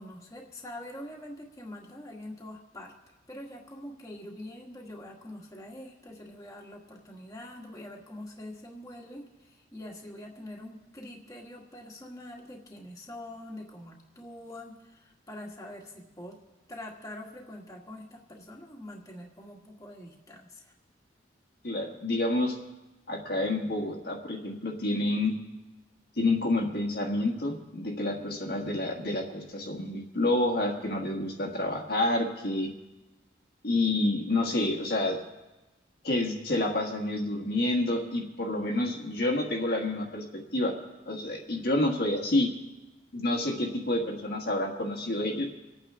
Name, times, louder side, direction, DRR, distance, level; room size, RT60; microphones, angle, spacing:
voice 1, 0.0-2.9 3.3-16.4 16.7-20.7, left 1 dB, 15° left, -2 dB, 1.7 m, -44 dB
voice 2, 21.6-22.6 23.1-25.3 26.2-32.7 33.6-35.2 36.0-40.2 40.5-40.7 41.0-42.5 43.1-45.5, left 2 dB, 55° left, 0 dB, 1.5 m, -28 dB
26.5 x 8.9 x 3.7 m, 1.1 s
head